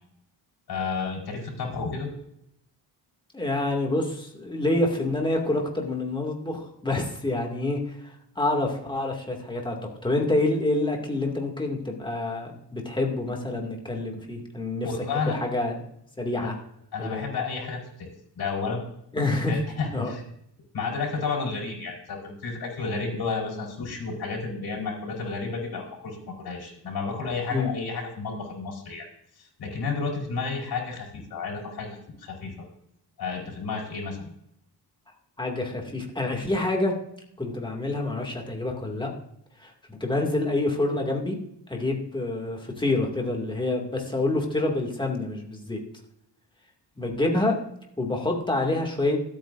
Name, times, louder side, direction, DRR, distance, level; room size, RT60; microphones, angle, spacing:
voice 1, 0.7-2.1 14.8-15.4 16.4-16.5 16.9-18.1 18.4-18.8 19.5-20.2 20.7-29.1 29.4-32.5 33.2-34.2, left 4 dB, 60° left, -1 dB, 4.8 m, -31 dB
voice 2, 3.3-9.8 10.0-14.9 15.2-15.7 16.2-16.5 17.0-17.2 19.1-19.6 19.9-20.1 27.5-27.7 35.4-36.9 37.4-39.1 39.6-41.4 41.7-45.8 47.0-47.6 48.0-49.2, left 2 dB, 10° left, 1 dB, 2.3 m, -27 dB
25.5 x 8.8 x 2.6 m, 0.75 s
cardioid pair, 120°, 41 cm